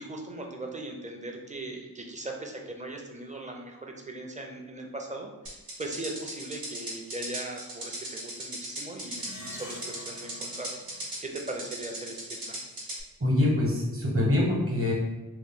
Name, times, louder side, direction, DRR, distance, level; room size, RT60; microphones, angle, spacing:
voice 1, 0.0-12.2 12.5-12.6, right 2 dB, 20° right, 1 dB, 0.5 m, -39 dB
sound 1, 5.5-13.0, right 1 dB, 80° right, 1.1 m, -38 dB
Plucked string instrument, 9.1-11.9, left 2 dB, 85° left, 0.6 m, -48 dB
voice 2, 13.2-14.9, left 1 dB, 40° right, -3 dB, 1.1 m, -24 dB
3.1 x 2.1 x 3.6 m, 1.1 s
wide cardioid pair, 65°, 35 cm